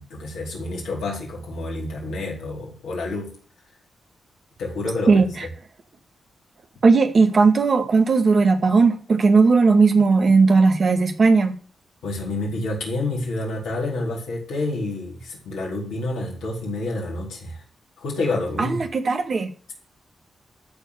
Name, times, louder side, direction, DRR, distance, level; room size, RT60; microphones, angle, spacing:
voice 1, 0.0-3.3 4.6-5.2 12.0-17.6 18.0-18.8, left 2 dB, 80° left, 4.3 m, -28 dB
voice 2, 6.8-11.6 18.6-19.5, right 4 dB, 55° right, 2.1 m, -17 dB
14.0 x 4.6 x 8.3 m
supercardioid pair, 45°, 0 cm